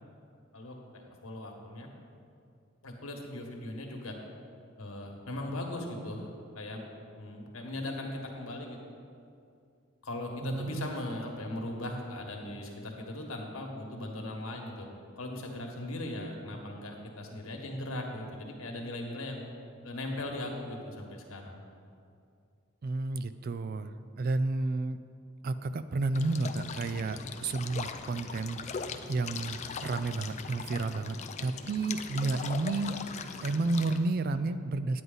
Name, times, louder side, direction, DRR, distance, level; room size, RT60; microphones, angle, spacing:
voice 1, 0.5-1.9 2.8-4.1 4.8-6.8 7.2-8.8 10.0-14.9 15.2-19.4 19.8-21.6, left 1 dB, 80° left, 1 dB, 1.5 m, -39 dB
voice 2, 10.4-10.9 22.8-25.0 25.4-28.6 29.1-33.0 33.4-35.0, right 3 dB, 45° right, 11 dB, 0.3 m, -31 dB
sound 1, 26.1-34.0, left 5 dB, 30° left, 0.4 m, -40 dB
9.6 x 9.3 x 4.0 m, 2.4 s
head